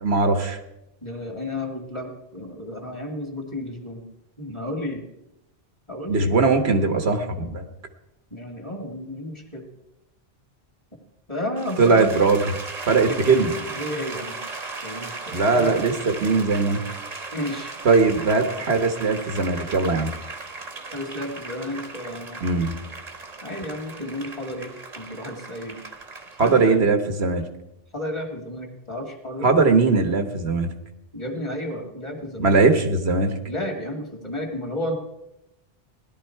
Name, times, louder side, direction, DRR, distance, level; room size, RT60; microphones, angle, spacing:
voice 1, 0.0-0.6 6.1-7.6 11.8-12.4 12.9-13.5 15.3-15.9 16.2-16.8 17.8-20.1 22.4-22.8 26.4-27.4 29.4-30.7 32.4-33.3, right 4 dB, 85° right, 7 dB, 1.5 m, -20 dB
voice 2, 1.0-4.0 4.4-5.0 5.9-6.4 8.3-9.6 11.3-12.1 12.9-14.4 14.8-15.8 17.3-17.7 20.9-22.4 23.4-25.8 26.4-26.8 27.9-29.5 31.1-32.6 33.5-35.0, left 1 dB, 30° left, 3 dB, 2.3 m, -32 dB
sound 1, 11.6-26.8, right 3 dB, 40° right, 1.1 m, -37 dB
17.0 x 11.5 x 4.6 m, 0.89 s
omnidirectional pair, 1.0 m